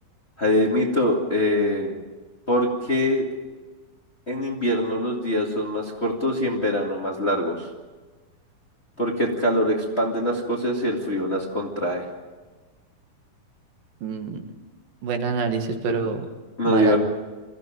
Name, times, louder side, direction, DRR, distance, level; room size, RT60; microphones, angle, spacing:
voice 1, 0.4-2.0 2.5-3.3 4.3-7.7 9.0-12.0 16.6-17.0, left 1 dB, 20° left, -1 dB, 1.9 m, -23 dB
voice 2, 14.0-14.4 15.0-16.3 16.7-17.0, right 5 dB, 70° right, 5 dB, 3.4 m, -26 dB
24.0 x 15.5 x 9.2 m, 1.3 s
omnidirectional pair, 4.2 m